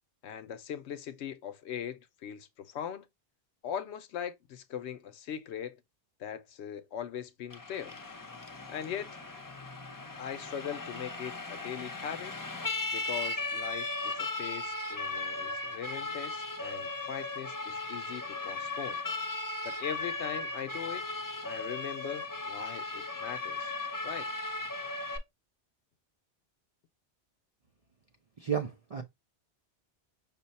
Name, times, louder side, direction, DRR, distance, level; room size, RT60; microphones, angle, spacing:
voice 1, 0.2-3.1 3.6-5.8 6.2-8.0 8.7-9.2 10.2-12.3 12.9-19.0 19.6-21.0 21.4-23.7 24.0-24.3, left 8 dB, 75° left, 0.9 m, -40 dB
Siren, 7.5-25.2, left 2 dB, 25° left, 0.6 m, -37 dB
voice 2, 28.4-29.0, right 8 dB, 50° right, 0.4 m, -32 dB
5.7 x 2.2 x 4.0 m
omnidirectional pair, 1.2 m